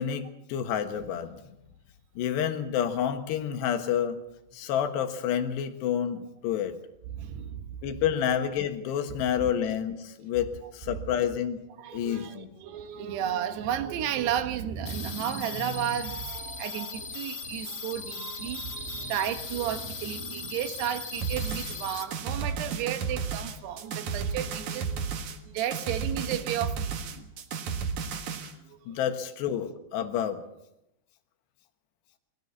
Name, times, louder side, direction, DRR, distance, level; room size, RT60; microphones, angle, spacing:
voice 1, 0.0-1.4 2.2-4.2 4.5-6.8 7.8-11.6 11.9-12.5 28.9-30.4, left 9 dB, 75° left, 3.5 m, -29 dB
voice 2, 7.1-7.7 9.4-9.5 11.8-27.3 28.6-29.0, right 10 dB, 75° right, 3.2 m, -33 dB
sound 1, 14.9-22.0, left 5 dB, 60° left, 0.9 m, -38 dB
sound 2, 21.2-28.5, right 6 dB, 55° right, 2.5 m, -33 dB
22.5 x 17.5 x 7.2 m
omnidirectional pair, 5.0 m